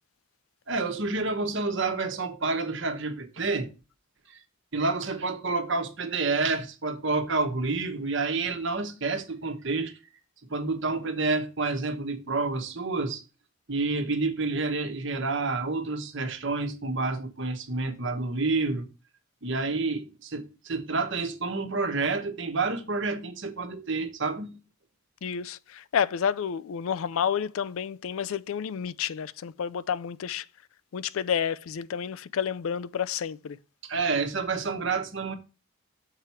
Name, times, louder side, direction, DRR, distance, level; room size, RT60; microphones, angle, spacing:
voice 1, 0.7-3.7 4.3-4.4 4.7-9.9 10.5-13.2 13.7-18.8 19.4-24.6 33.8-35.3, right 3 dB, 55° right, 1.2 m, -29 dB
voice 2, 25.2-30.5 30.9-33.6, left 7 dB, 75° left, 0.4 m, -30 dB
6.7 x 4.6 x 5.6 m
head